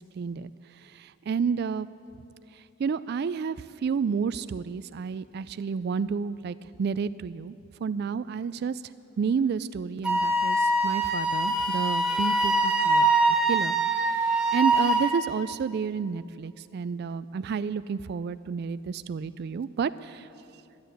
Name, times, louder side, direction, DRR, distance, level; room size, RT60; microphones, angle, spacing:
voice 1, 0.2-0.5 1.0-1.9 2.8-3.6 3.8-7.5 7.8-8.8 9.2-13.1 13.5-20.3, right 6 dB, 50° right, 15 dB, 0.3 m, -30 dB
Wind instrument woodwind instrument, 10.0-15.2, right 2 dB, 5° right, 1.0 m, -24 dB
12.5 x 12.0 x 8.9 m, 2.6 s
head